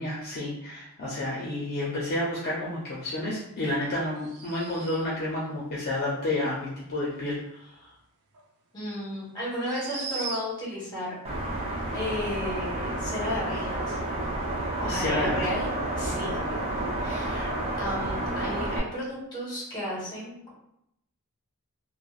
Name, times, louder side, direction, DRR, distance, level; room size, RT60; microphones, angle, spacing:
voice 1, 0.0-7.9 14.9-15.6, left 1 dB, 45° left, -5 dB, 0.5 m, -30 dB
sound 1, 4.2-5.3 8.3-8.4 9.5-10.8, right 4 dB, 85° right, 0.5 m, -38 dB
voice 2, 8.7-11.1 11.9-14.0 14.8-15.7 16.0-16.4 17.0-17.5 17.8-20.5, left 1 dB, 20° left, -6 dB, 1.2 m, -33 dB
sound 2, 11.2-18.8, right 1 dB, 30° right, 0.5 m, -30 dB
3.2 x 2.0 x 2.4 m, 0.77 s
head